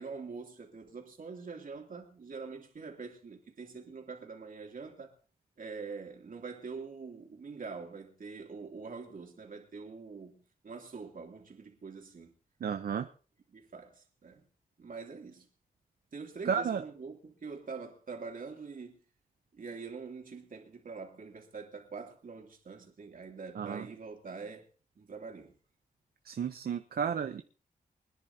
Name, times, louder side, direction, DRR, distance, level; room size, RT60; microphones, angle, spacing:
voice 1, 0.0-5.1 5.6-12.3 13.5-14.4 14.8-15.5 16.1-19.0 19.5-24.6 25.0-25.6, right 4 dB, 60° right, 2.9 m, -44 dB
voice 2, 12.6-13.1 16.4-16.8 23.5-23.9 26.2-27.4, right 7 dB, 80° right, 0.8 m, -32 dB
24.5 x 10.5 x 2.8 m
wide cardioid pair, 100°, 16 cm